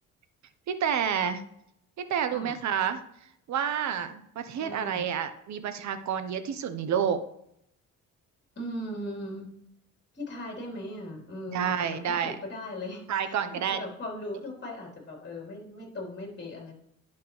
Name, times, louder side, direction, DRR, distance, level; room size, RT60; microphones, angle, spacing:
voice 1, 0.7-1.4 2.1-3.0 3.5-7.2 11.5-12.3 13.1-13.8, right 8 dB, 65° right, 10 dB, 1.0 m, -29 dB
voice 2, 4.6-5.1 8.6-9.5 10.1-11.7 12.0-16.7, left 1 dB, 35° left, -1 dB, 3.7 m, -38 dB
11.0 x 5.6 x 3.2 m, 0.73 s
cardioid pair, 90°, 30 cm